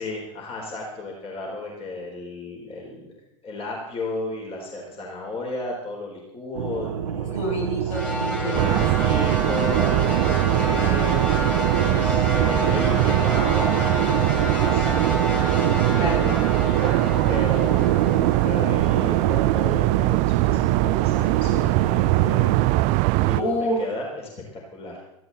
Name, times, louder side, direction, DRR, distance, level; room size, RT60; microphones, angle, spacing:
voice 1, 0.0-7.4 8.4-11.2 11.8-15.0 15.7-17.0 17.3-18.1 18.4-22.5 23.2-24.3 24.7-25.0, left 2 dB, 35° left, -1 dB, 4.1 m, -34 dB
sound 1, 6.5-22.8, right 10 dB, 75° right, 0.8 m, -27 dB
voice 2, 7.1-8.9 15.9-16.4 23.4-23.8, equal, 75° left, -2 dB, 6.7 m, -27 dB
sound 2, 7.9-20.2, left 1 dB, 10° left, 3.1 m, -30 dB
sound 3, 8.6-23.4, right 21 dB, 45° right, 0.4 m, -22 dB
17.0 x 14.0 x 4.2 m, 0.88 s
hypercardioid pair, 85°, 17 cm